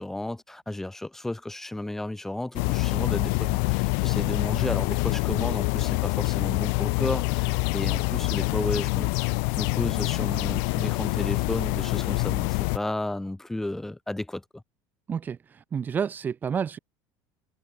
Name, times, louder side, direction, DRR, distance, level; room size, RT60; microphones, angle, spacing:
voice 1, 0.0-9.1 9.6-14.6, left 1 dB, 5° left, 3.1 m, -33 dB
sound 1, 2.6-12.8, left 40 dB or more, 70° left, 1.2 m, -26 dB
voice 2, 15.1-16.8, right 7 dB, 20° right, 4.5 m, -30 dB
cardioid pair, 165°, 8 cm